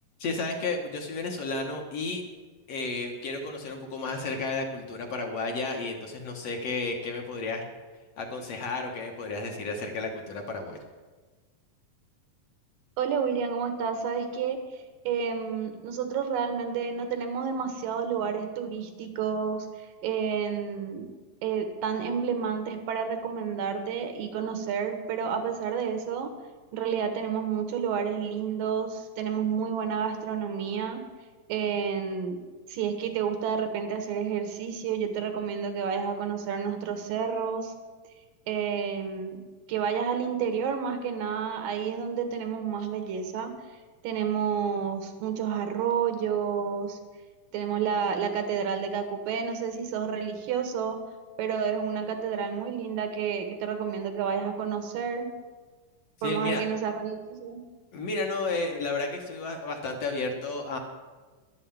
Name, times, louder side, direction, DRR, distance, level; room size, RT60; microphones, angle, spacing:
voice 1, 0.2-2.2 2.7-7.6 8.2-10.8 56.2-56.6 57.9-60.8, left 3 dB, 60° left, 2 dB, 1.9 m, -32 dB
voice 2, 13.0-14.6 15.0-19.7 20.0-21.1 21.4-26.3 26.7-31.0 31.5-32.4 32.7-37.7 38.5-39.4 39.7-43.5 44.0-47.0 47.5-51.0 51.4-55.3 56.2-57.6, right 7 dB, 90° right, 7 dB, 3.0 m, -30 dB
11.5 x 7.7 x 8.6 m, 1.4 s
omnidirectional pair, 3.8 m